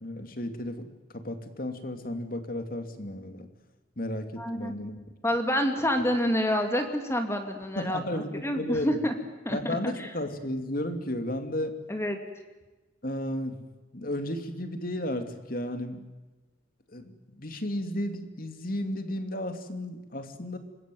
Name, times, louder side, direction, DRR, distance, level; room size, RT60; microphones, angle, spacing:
voice 1, 0.0-3.5 4.0-5.0 7.8-9.0 9.5-11.8 13.0-13.7 13.9-16.0 16.9-20.6, left 1 dB, 50° left, 7 dB, 2.7 m, -33 dB
voice 2, 4.4-4.7 5.2-8.0 8.4-9.1 9.5-10.1 11.9-12.2, equal, 15° left, 5 dB, 2.5 m, -28 dB
26.0 x 22.0 x 9.4 m, 1.1 s
head